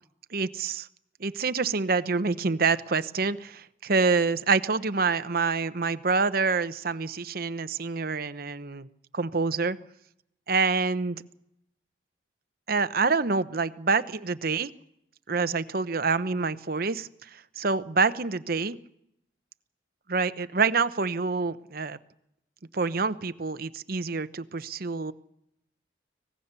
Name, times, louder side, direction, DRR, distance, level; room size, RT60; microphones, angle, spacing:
voice 1, 0.3-0.9 1.2-8.9 9.1-9.8 10.5-11.2 12.7-14.7 15.3-18.8 20.1-22.0 22.7-25.1, right 4 dB, 50° right, 12 dB, 0.8 m, -27 dB
25.0 x 18.5 x 6.8 m, 0.80 s
head